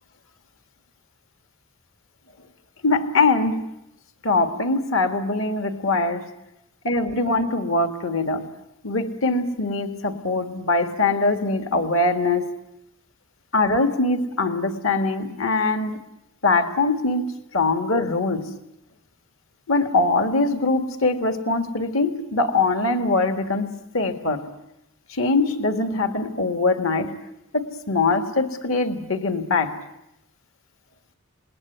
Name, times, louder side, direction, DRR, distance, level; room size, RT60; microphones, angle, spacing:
voice 1, 2.8-3.6 4.2-6.3 6.8-8.5 8.8-12.5 13.5-16.0 16.4-18.5 19.7-24.5 25.1-27.2 27.5-29.8, left 3 dB, 65° left, 8 dB, 1.8 m, -22 dB
27.5 x 20.0 x 9.4 m, 0.86 s
head